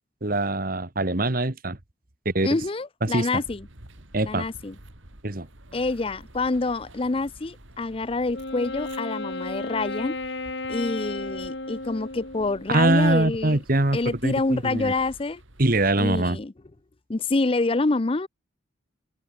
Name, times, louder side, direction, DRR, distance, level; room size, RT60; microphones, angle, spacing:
voice 1, 0.2-1.8 2.2-2.5 3.0-3.3 4.1-4.5 5.2-5.5 12.7-14.9 15.6-16.4, right 2 dB, 45° right, 1.7 m, -23 dB
voice 2, 2.4-3.7 4.2-4.7 5.7-10.3 10.7-13.6 13.9-15.4 16.0-16.5 17.1-18.3, left 3 dB, 30° left, 0.5 m, -27 dB
sound 1, 3.4-16.0, right 1 dB, 85° right, 4.1 m, -50 dB
Wind instrument woodwind instrument, 8.3-12.9, left 2 dB, 60° left, 3.6 m, -34 dB
open air
head